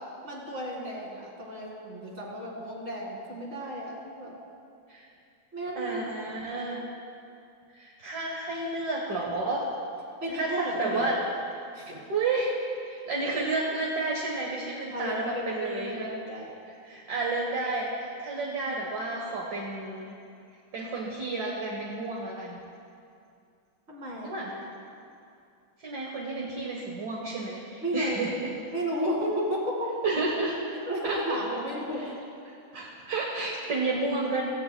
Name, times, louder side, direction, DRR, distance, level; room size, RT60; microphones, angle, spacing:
voice 1, 0.2-4.4 5.5-6.4 10.2-11.1 11.7-12.0 14.9-16.5 23.9-24.5 27.8-28.2 28.7-29.9 30.9-32.1, equal, 30° right, -3 dB, 2.5 m, -33 dB
voice 2, 5.7-6.9 7.7-9.6 10.3-11.2 12.1-16.2 16.8-20.1 20.7-22.6 24.2-24.7 25.8-28.5 30.0-30.6 31.0-31.2 32.0-32.1 32.4-34.4, right 3 dB, 50° right, -3 dB, 1.7 m, -31 dB
16.5 x 15.5 x 2.3 m, 2.5 s
omnidirectional pair, 2.3 m